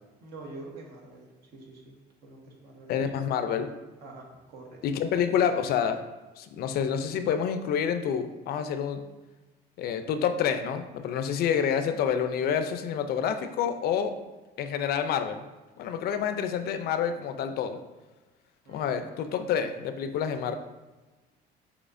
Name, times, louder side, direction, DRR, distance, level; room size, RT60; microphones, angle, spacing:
voice 1, 0.2-2.0 2.2-3.0 4.0-5.0 18.6-19.1, right 2 dB, 75° right, -1 dB, 1.2 m, -46 dB
voice 2, 2.9-3.7 4.8-6.0 6.4-9.0 9.8-14.1 14.6-15.4 15.8-17.8 18.7-20.5, left 8 dB, 65° left, 8 dB, 0.4 m, -28 dB
6.2 x 2.9 x 2.5 m, 1.2 s
cardioid pair, 110°, 17 cm